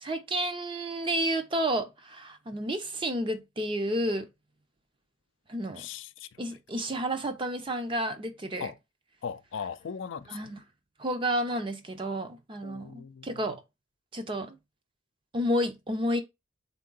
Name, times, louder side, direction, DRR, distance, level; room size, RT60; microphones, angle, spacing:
voice 1, 0.0-4.3 5.5-5.8 6.4-8.7 10.3-10.6 11.0-13.6 14.1-14.6 15.3-16.2, equal, 25° right, 0.6 m, -31 dB
voice 2, 5.8-6.4 8.6-8.8 9.2-10.5 12.6-13.6, left 6 dB, 65° left, 0.4 m, -39 dB
3.7 x 3.6 x 3.8 m
head